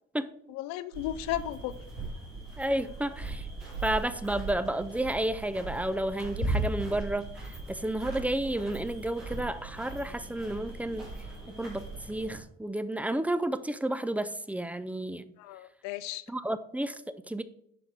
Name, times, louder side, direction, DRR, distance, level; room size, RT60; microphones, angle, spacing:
voice 1, 0.5-1.7 15.4-16.2, left 13 dB, 60° left, 0.6 m, -34 dB
sound 1, 0.9-12.3, right 2 dB, 85° right, 3.1 m, -38 dB
voice 2, 2.6-3.4 3.8-7.3 7.7-11.1 11.6-15.2 16.3-17.4, right 1 dB, 5° right, 0.5 m, -31 dB
8.5 x 6.4 x 3.4 m
figure-of-eight pair, 45°, 31 cm